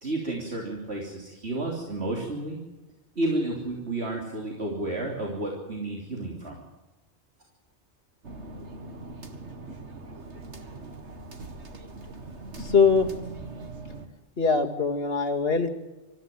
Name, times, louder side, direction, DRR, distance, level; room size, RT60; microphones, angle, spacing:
voice 1, 0.0-2.6 3.2-6.6, right 2 dB, 70° right, -1 dB, 3.6 m, -31 dB
sound 1, 8.2-14.1, right 2 dB, 85° right, 2.3 m, -41 dB
voice 2, 12.6-13.1 14.4-15.7, left 5 dB, 60° left, 4 dB, 2.3 m, -22 dB
25.0 x 14.5 x 9.3 m, 1.1 s
omnidirectional pair, 1.1 m